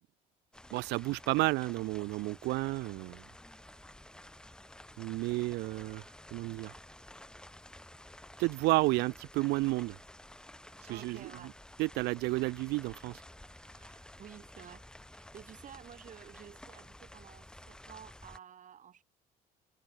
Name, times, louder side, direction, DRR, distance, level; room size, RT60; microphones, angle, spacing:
sound 1, 0.5-18.4, left 1 dB, 5° left, 0.9 m, -52 dB
voice 1, 0.7-3.2 5.0-6.1 6.3-6.7 8.4-10.0 10.8-11.2 11.8-13.2 13.7-14.0, right 22 dB, 85° right, 0.4 m, -31 dB
voice 2, 10.9-11.6 14.2-19.0, right 9 dB, 50° right, 3.7 m, -52 dB
cardioid pair, 110°, 17 cm